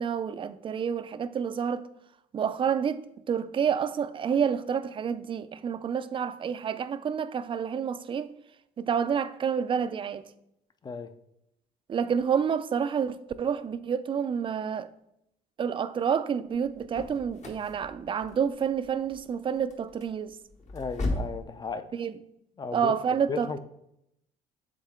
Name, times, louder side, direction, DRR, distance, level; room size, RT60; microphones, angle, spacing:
voice 1, 0.0-1.9 2.3-8.3 8.8-10.2 11.9-14.9 15.6-20.4 21.9-22.1 22.7-23.6, right 7 dB, 30° right, 0.4 m, -29 dB
sound 1, 16.5-21.4, left 2 dB, 45° left, 1.2 m, -37 dB
voice 2, 20.7-21.8 22.6-22.9 23.3-23.6, left 5 dB, 25° left, 0.5 m, -34 dB
7.3 x 3.8 x 3.6 m
cardioid pair, 110°, 17 cm